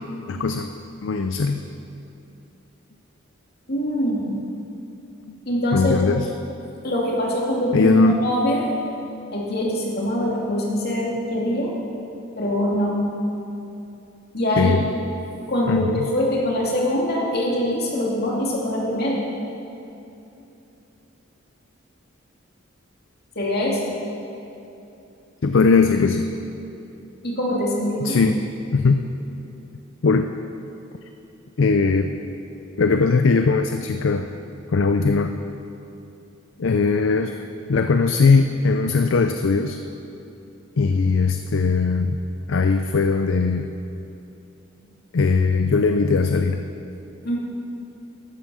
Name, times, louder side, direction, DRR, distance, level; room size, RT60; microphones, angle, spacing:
voice 1, 0.3-0.7 1.0-1.6 5.3-5.4 5.7-6.3 7.7-8.1 14.6-14.9 15.7-16.1 25.4-26.3 28.0-28.5 28.7-29.1 30.0-30.3 31.6-32.1 32.8-34.3 34.7-35.3 36.6-37.4 37.7-39.8 40.8-42.2 42.5-43.7 45.1-46.6, left 4 dB, 65° left, 7 dB, 0.5 m, -19 dB
voice 2, 3.7-4.4 5.5-6.0 6.8-8.6 9.3-11.7 12.4-13.0 14.3-14.7 15.5-19.2 23.4-23.9 27.2-28.2 47.2-47.4, left 1 dB, 50° left, -3 dB, 2.5 m, -23 dB
13.5 x 9.2 x 6.2 m, 2.8 s
head